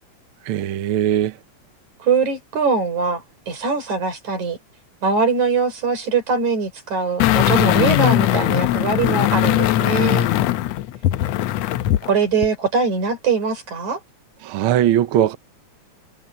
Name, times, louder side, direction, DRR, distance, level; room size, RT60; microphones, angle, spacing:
voice 1, 0.5-1.3 14.4-15.4, right 11 dB, 65° right, 1.4 m, -19 dB
voice 2, 2.0-4.6 5.0-10.3 12.0-14.0, right 4 dB, 80° right, 6.6 m, -22 dB
sound 1, 7.2-12.1 12.4-12.5, left 13 dB, 75° left, 1.8 m, -19 dB
omnidirectional pair, 3.3 m